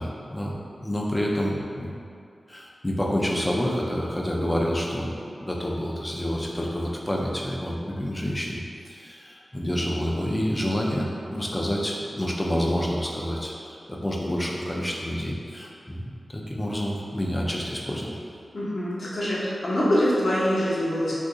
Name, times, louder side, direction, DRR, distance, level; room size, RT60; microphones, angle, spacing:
voice 1, 0.0-2.0 2.5-18.1, equal, 15° left, -2 dB, 0.4 m, -28 dB
voice 2, 18.5-21.1, equal, 60° left, -8 dB, 0.8 m, -24 dB
2.8 x 2.5 x 3.6 m, 2.5 s
wide cardioid pair, 110°, 0 cm